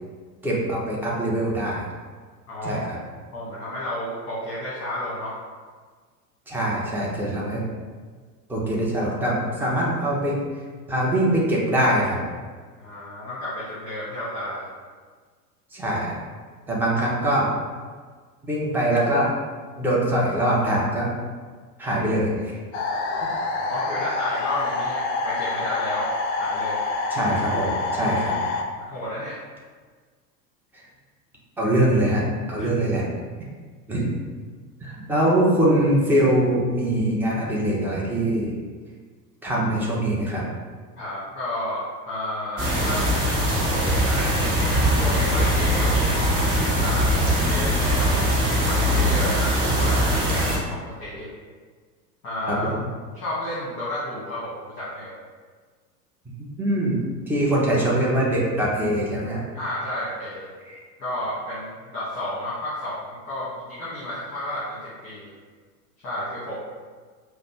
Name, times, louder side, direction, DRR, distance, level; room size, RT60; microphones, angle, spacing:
voice 1, 0.4-1.9 2.6-3.0 6.5-7.6 8.5-10.4 10.9-12.2 15.7-16.2 16.7-17.5 18.5-19.3 19.8-21.1 21.8-22.6 27.1-28.3 31.6-33.1 33.9-34.1 34.8-38.5 39.4-40.5 52.5-52.7 56.6-59.4 60.6-60.7, right 1 dB, 5° right, -5 dB, 0.5 m, -23 dB
voice 2, 2.5-2.8 3.3-5.3 12.8-14.7 23.1-26.1 26.4-26.8 28.7-29.4 41.0-43.0 43.7-46.0 46.8-48.3 48.6-51.3 52.2-52.7 53.1-55.1 59.5-60.5 61.0-65.3 66.0-66.5, left 1 dB, 30° left, -9 dB, 1.1 m, -32 dB
sound 1, 22.7-28.6, left 3 dB, 45° left, 0.5 m, -27 dB
sound 2, 42.6-50.6, equal, 30° right, 1.1 m, -21 dB
5.0 x 2.1 x 2.9 m, 1.5 s
figure-of-eight pair, 85°, 50 cm